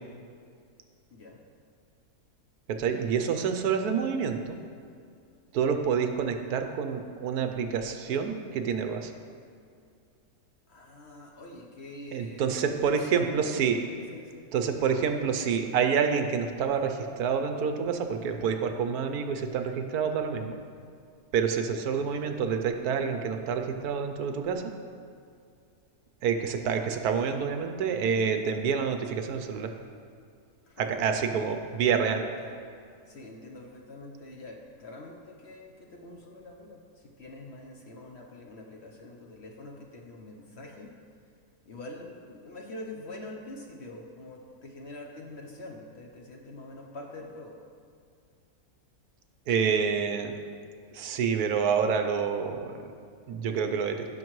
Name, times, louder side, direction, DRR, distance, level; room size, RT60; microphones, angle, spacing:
voice 1, 1.1-1.4 10.7-13.4 13.6-14.8 21.6-21.8 30.7-30.9 32.4-32.6 33.1-40.9 41.7-47.6, left 2 dB, 50° left, 0 dB, 0.9 m, -45 dB
voice 2, 2.7-4.6 5.5-9.1 12.1-13.8 14.5-20.6 21.3-24.7 26.2-29.7 30.8-32.2 49.5-50.3 50.9-52.7 53.3-54.1, right 6 dB, 75° right, 6 dB, 1.1 m, -28 dB
16.0 x 5.8 x 3.1 m, 2.3 s
omnidirectional pair, 1.7 m